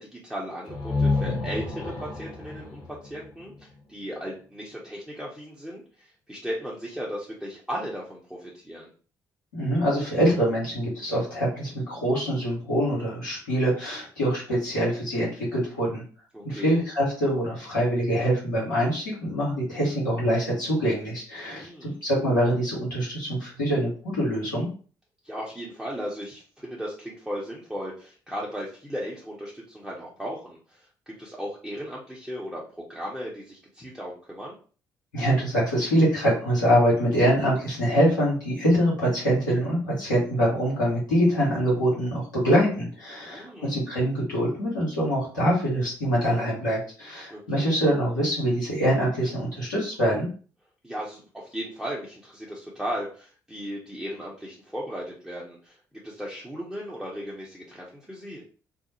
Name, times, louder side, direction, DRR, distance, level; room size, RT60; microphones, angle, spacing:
voice 1, 0.0-8.9 16.3-16.8 21.5-22.0 25.2-34.5 43.3-43.8 47.3-47.7 50.8-55.8 56.0-58.4, equal, ahead, -5 dB, 0.8 m, -36 dB
sound 1, 0.6-4.4, left 3 dB, 45° left, 1.1 m, -30 dB
voice 2, 9.5-16.0 16.4-24.7 35.1-50.3, equal, 85° left, -6 dB, 1.0 m, -24 dB
2.4 x 2.0 x 3.0 m, 0.40 s
figure-of-eight pair, 45°, 10 cm